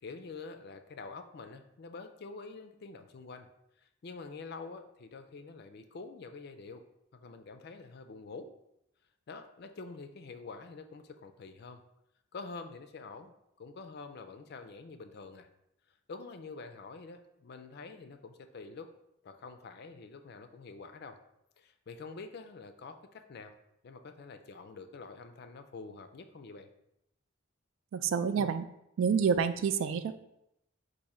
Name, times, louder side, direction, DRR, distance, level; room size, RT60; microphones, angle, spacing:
voice 1, 0.0-3.5 3.8-6.8 7.1-8.5 9.3-11.8 12.3-15.5 15.9-18.9 19.2-21.2 21.6-23.5 23.8-26.7, left 4 dB, 50° left, 8 dB, 0.4 m, -47 dB
voice 2, 27.9-28.7 29.0-30.2, right 6 dB, 70° right, 12 dB, 0.3 m, -28 dB
4.9 x 2.6 x 4.1 m, 0.82 s
head